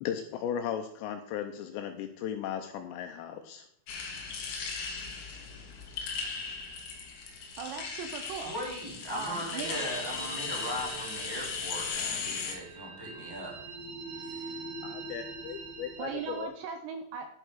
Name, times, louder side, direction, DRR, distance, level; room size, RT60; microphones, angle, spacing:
voice 1, 0.0-3.7 14.8-16.5, left 9 dB, 90° left, 6 dB, 2.6 m, -36 dB
sound 1, 3.9-12.5, left 5 dB, 70° left, 1.9 m, -37 dB
voice 2, 7.6-8.5 9.1-9.8 16.0-17.3, right 6 dB, 80° right, 7 dB, 2.6 m, -38 dB
voice 3, 8.3-13.5 14.2-14.6, equal, 5° right, -4 dB, 2.4 m, -39 dB
sound 2, 9.6-16.5, right 3 dB, 65° right, 2.5 m, -43 dB
11.0 x 8.0 x 4.8 m, 0.72 s
omnidirectional pair, 5.7 m